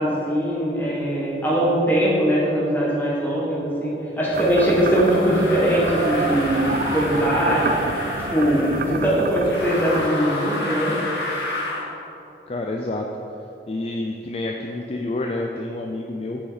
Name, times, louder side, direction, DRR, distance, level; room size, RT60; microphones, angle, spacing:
voice 1, 0.0-7.7 8.3-10.9, equal, 10° left, -6 dB, 1.5 m, -21 dB
sound 1, 4.2-8.9 9.4-11.9, left 2 dB, 80° left, 1.5 m, -30 dB
sound 2, 4.3-10.1, right 4 dB, 50° right, 0.3 m, -29 dB
voice 2, 12.5-13.1 13.7-16.4, left 2 dB, 35° left, 1 dB, 0.4 m, -28 dB
7.8 x 5.8 x 4.1 m, 2.9 s
head